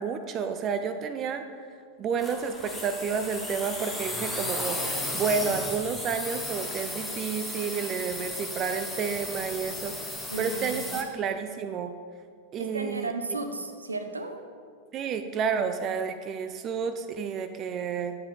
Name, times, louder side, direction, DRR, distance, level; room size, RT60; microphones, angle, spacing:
voice 1, 0.0-1.5 2.0-11.9 12.5-13.1 14.9-18.2, right 6 dB, 30° right, 8 dB, 0.4 m, -30 dB
sound 1, 2.2-11.0, left 1 dB, 5° left, 1.2 m, -35 dB
voice 2, 10.3-11.0 12.6-14.4, right 2 dB, 80° right, 6 dB, 0.6 m, -34 dB
10.0 x 7.2 x 3.6 m, 2.1 s
figure-of-eight pair, 90°, 0 cm